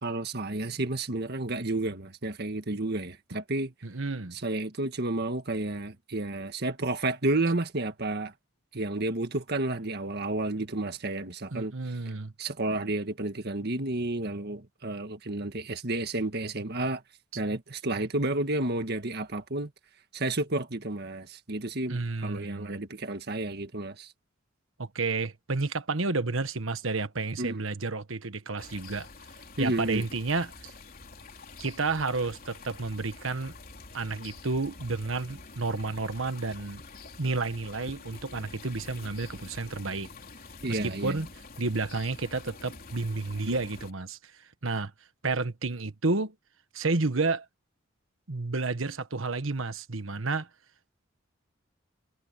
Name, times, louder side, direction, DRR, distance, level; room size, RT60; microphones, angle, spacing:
voice 1, 0.0-3.7 4.3-8.3 8.7-11.7 12.4-17.0 17.3-19.7 20.1-24.1 27.4-27.6 29.6-30.0 40.6-41.2, right 2 dB, 55° right, 1.7 m, -31 dB
voice 2, 3.8-4.4 11.5-12.3 21.9-22.8 24.8-29.1 29.6-30.7 31.6-33.5 33.9-36.8 37.2-40.1 40.7-41.3 41.6-44.2 44.6-44.9 45.2-46.3 46.7-47.4 48.3-50.5, right 3 dB, 75° right, 1.4 m, -31 dB
sound 1, 28.6-43.9, left 3 dB, 45° left, 3.6 m, -47 dB
head